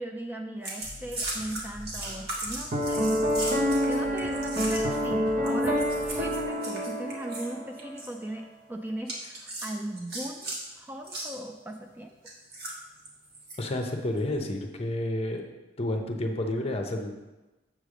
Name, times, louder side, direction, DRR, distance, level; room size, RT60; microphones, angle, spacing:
voice 1, 0.0-3.2 3.9-5.8 6.1-12.1, right 1 dB, 10° right, 3 dB, 0.4 m, -38 dB
sound 1, 0.6-5.1 5.4-7.5 7.8-8.1 9.1-10.6 11.0-11.3 12.2-13.6 14.2-14.4, right 2 dB, 60° right, 1.4 m, -37 dB
sound 2, 0.8-6.5, left 1 dB, 80° right, 1.6 m, -45 dB
Piano, 2.7-8.0, equal, 45° right, 0.7 m, -27 dB
voice 2, 13.6-15.5 15.8-17.1, left 1 dB, 35° left, 3 dB, 0.7 m, -30 dB
7.4 x 3.3 x 6.3 m, 1.1 s
head